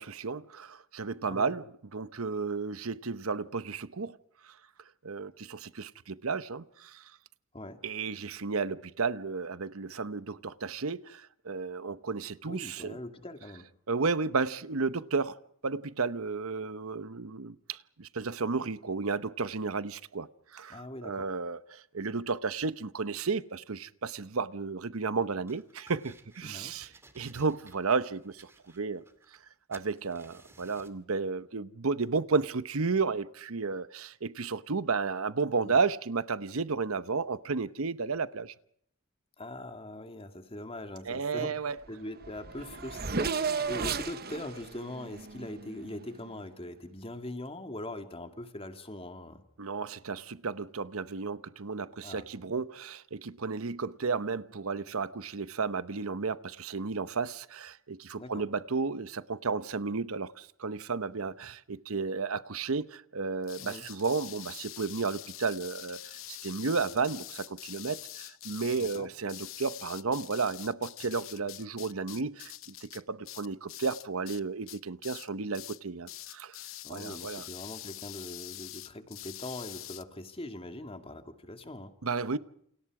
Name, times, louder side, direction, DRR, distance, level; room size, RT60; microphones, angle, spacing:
voice 1, 0.0-1.7 1.9-4.2 4.4-4.5 5.0-7.0 7.8-12.9 13.9-15.4 15.6-26.9 27.1-29.0 29.7-38.5 41.0-41.7 49.6-72.5 72.8-76.6 76.9-77.4 82.0-82.4, right 4 dB, 75° right, 0.9 m, -33 dB
voice 2, 12.4-13.7 20.7-21.3 26.4-26.8 35.6-35.8 39.4-41.6 41.9-49.4 52.0-52.3 58.2-58.4 63.6-63.9 68.8-69.1 76.8-81.9, left 1 dB, 25° left, 2.3 m, -42 dB
sound 1, 25.5-26.4 26.8-29.5 29.7-31.0, right 2 dB, 10° right, 2.3 m, -58 dB
Race car auto racing / Accelerating revving vroom, 41.9-42.0 42.2-46.2, right 5 dB, 45° right, 1.0 m, -34 dB
sound 2, 63.4-74.4 74.7-75.3 75.5-75.8 76.1-80.0, left 14 dB, 65° left, 0.9 m, -45 dB
29.0 x 28.0 x 4.9 m
head